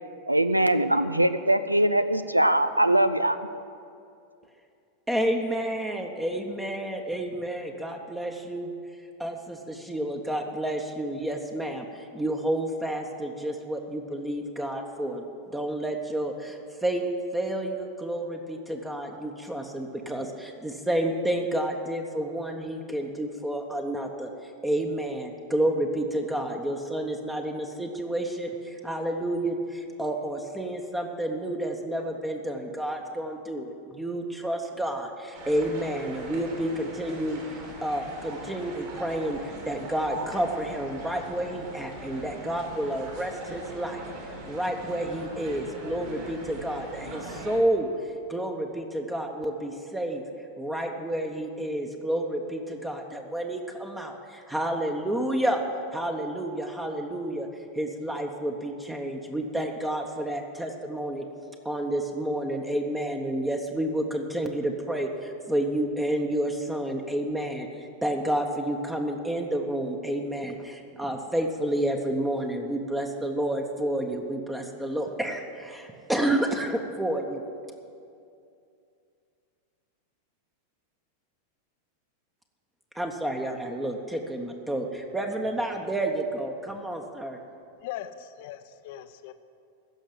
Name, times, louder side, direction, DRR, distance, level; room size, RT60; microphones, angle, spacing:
voice 1, 0.3-3.4, right 1 dB, 85° right, 11 dB, 0.5 m, -22 dB
voice 2, 5.1-8.7 9.2-15.2 15.5-17.0 17.3-37.4 37.8-47.9 48.3-50.2 50.6-55.6 55.9-57.5 57.7-61.2 61.6-77.4 82.9-87.4, right 1 dB, 5° right, 3 dB, 1.0 m, -30 dB
sound 1, 35.3-47.6, right 2 dB, 50° right, 3.3 m, -41 dB
voice 3, 87.8-89.3, left 12 dB, 50° left, 11 dB, 0.7 m, -39 dB
15.5 x 6.4 x 9.3 m, 2.5 s
figure-of-eight pair, 90°, 0 cm